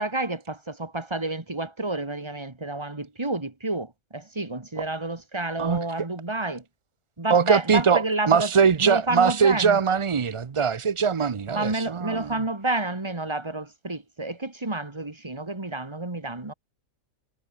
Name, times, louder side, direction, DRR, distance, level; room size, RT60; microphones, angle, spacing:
voice 1, 0.0-6.6 7.2-8.5 8.8-9.8 11.5-16.5, right 2 dB, 20° right, 1.9 m, -30 dB
voice 2, 7.3-12.3, right 6 dB, 45° right, 0.4 m, -22 dB
omnidirectional pair, 1.4 m